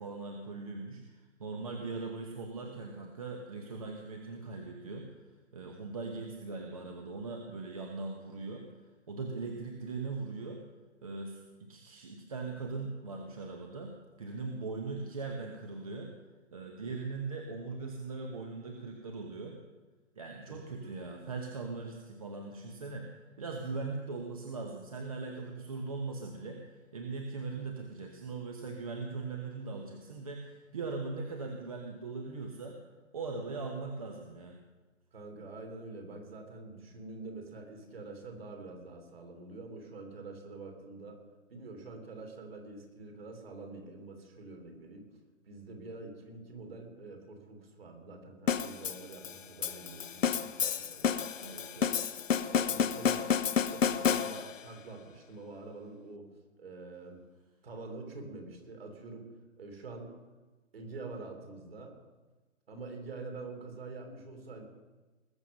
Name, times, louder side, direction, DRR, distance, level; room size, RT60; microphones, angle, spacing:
voice 1, 0.0-5.1 5.5-8.7 9.1-10.6 11.0-16.1 16.5-19.6 20.2-32.8 33.1-34.6 51.4-52.1, right 3 dB, 30° right, 2 dB, 1.0 m, -40 dB
voice 2, 20.5-20.9 35.1-41.2 41.5-45.0 45.4-51.2 52.5-53.3 53.6-56.3 56.6-57.2 57.6-59.3 59.6-60.1 60.7-61.9 62.7-64.7, right 3 dB, 50° right, 4 dB, 3.2 m, -46 dB
sound 1, 48.5-54.7, left 7 dB, 80° left, 1.0 m, -30 dB
20.0 x 7.2 x 6.4 m, 1.2 s
hypercardioid pair, 175°, 38 cm